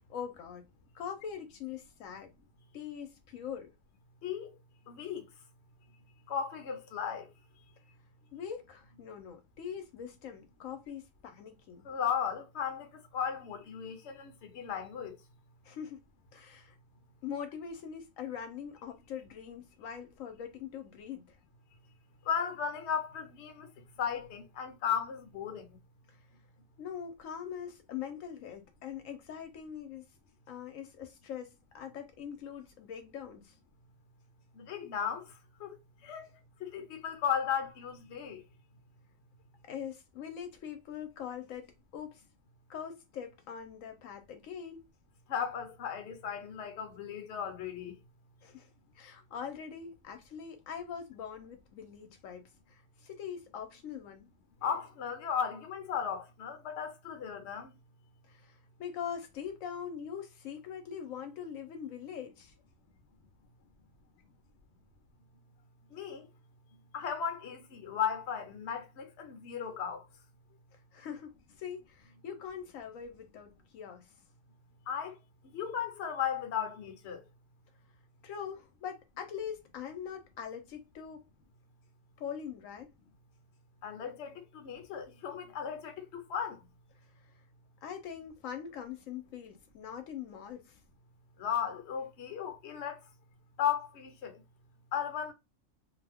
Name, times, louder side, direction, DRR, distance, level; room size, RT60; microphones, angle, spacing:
voice 1, 0.1-0.6 0.9-2.3 2.7-3.7 8.3-11.8 15.6-16.0 16.3-16.8 17.2-21.4 26.1-26.2 26.8-30.0 30.5-33.5 39.6-42.2 42.7-44.8 48.4-48.7 48.9-54.3 58.3-62.5 70.9-74.1 78.2-81.2 82.2-82.9 87.8-90.8, left 8 dB, 85° left, 1.0 m, -42 dB
voice 2, 4.9-5.2 6.3-7.3 11.8-15.2 22.3-23.7 24.0-25.7 34.6-35.3 35.6-35.8 36.0-36.3 36.6-38.4 45.3-47.9 54.6-57.7 65.9-66.3 66.9-70.0 74.9-75.2 75.5-77.2 83.8-86.6 91.4-93.0 93.6-94.4 94.9-95.3, left 8 dB, 60° left, 0.9 m, -35 dB
2.5 x 2.1 x 3.4 m
omnidirectional pair, 1.4 m